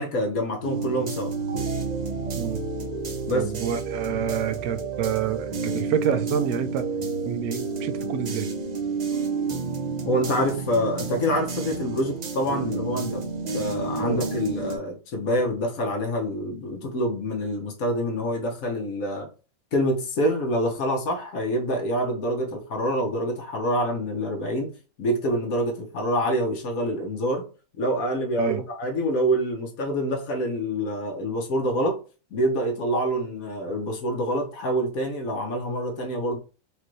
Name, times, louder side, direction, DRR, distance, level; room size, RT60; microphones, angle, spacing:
voice 1, 0.0-1.3 3.3-3.5 10.0-13.2 13.5-19.3 19.7-24.7 25.0-27.5 27.8-32.0 32.3-36.4, equal, 75° left, 1.4 m, -26 dB
sound 1, 0.6-14.8, right 4 dB, 40° right, 0.6 m, -30 dB
voice 2, 3.3-6.9 7.2-8.5 12.9-13.1 14.0-14.2 28.4-28.6, right 8 dB, 90° right, 1.1 m, -28 dB
4.9 x 2.5 x 3.1 m
omnidirectional pair, 1.5 m